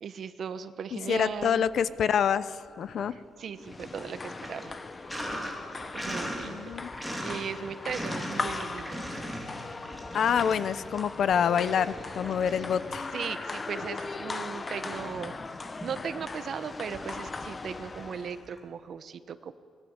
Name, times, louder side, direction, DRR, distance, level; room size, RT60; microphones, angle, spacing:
voice 1, 0.0-1.6 3.1-4.8 5.9-6.7 7.2-9.1 13.1-19.5, right 7 dB, 45° right, 13 dB, 1.1 m, -37 dB
voice 2, 0.9-3.2 6.4-6.9 10.1-13.1, left 8 dB, 50° left, 16 dB, 0.7 m, -27 dB
Sink (filling or washing), 1.3-2.2 2.5-18.6, equal, 5° left, 3.0 m, -41 dB
sound 1, 3.6-18.5, left 3 dB, 20° left, 0.8 m, -39 dB
24.5 x 20.0 x 8.9 m, 2.3 s
cardioid pair, 165°, 0 cm